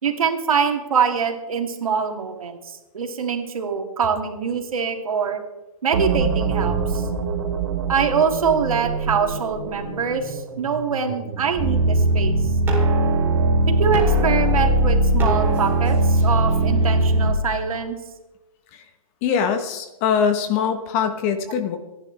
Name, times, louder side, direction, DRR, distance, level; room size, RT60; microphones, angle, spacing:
voice 1, 0.0-5.4 5.8-7.0 7.9-12.4 13.7-18.0, right 6 dB, 80° right, 4 dB, 2.6 m, -24 dB
sound 1, 5.9-12.8, right 5 dB, 55° right, 4.3 m, -27 dB
sound 2, 11.6-17.3, right 1 dB, 15° right, 3.1 m, -19 dB
voice 2, 19.2-21.8, left 7 dB, 25° left, 8 dB, 1.1 m, -22 dB
27.5 x 10.5 x 3.4 m, 1.1 s
hypercardioid pair, 165°, 18 cm